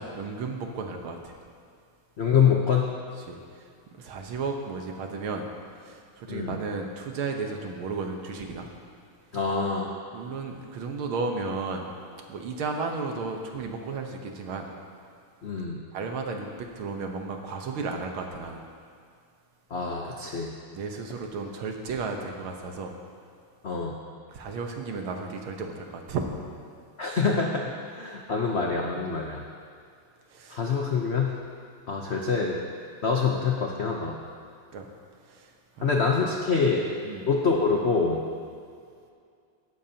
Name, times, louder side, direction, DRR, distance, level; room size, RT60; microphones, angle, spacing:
voice 1, 0.0-1.4 3.2-5.5 5.8-8.7 10.1-11.9 12.3-14.7 15.9-18.6 20.7-22.9 24.3-26.3 30.3-30.6 34.7-34.9 35.3-36.2 37.0-37.3, right 4 dB, 75° right, 3 dB, 1.9 m, -34 dB
voice 2, 2.2-2.9 6.3-6.6 9.3-9.9 15.4-15.8 19.7-20.5 23.6-23.9 27.0-29.4 30.5-31.3 31.9-32.6 33.0-34.2 35.8-36.8 37.3-38.2, left 5 dB, 70° left, 0 dB, 0.6 m, -25 dB
16.5 x 12.0 x 2.8 m, 2.3 s
omnidirectional pair, 2.4 m